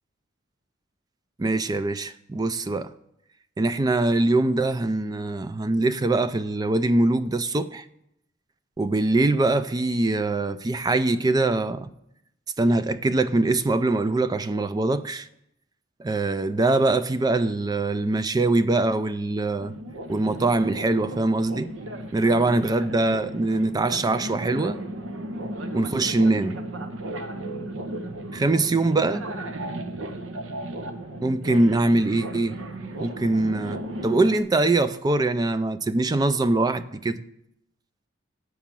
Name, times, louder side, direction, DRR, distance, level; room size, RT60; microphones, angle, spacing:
voice 1, 1.4-2.9 3.6-7.8 8.8-11.9 12.6-15.3 16.0-19.7 20.1-21.7 22.1-24.8 25.7-26.6 28.3-29.3 31.2-32.6 33.0-37.2, right 2 dB, 20° right, 0.3 m, -23 dB
sound 1, 19.6-34.4, right 1 dB, 85° right, 0.8 m, -35 dB
8.2 x 4.7 x 7.4 m
head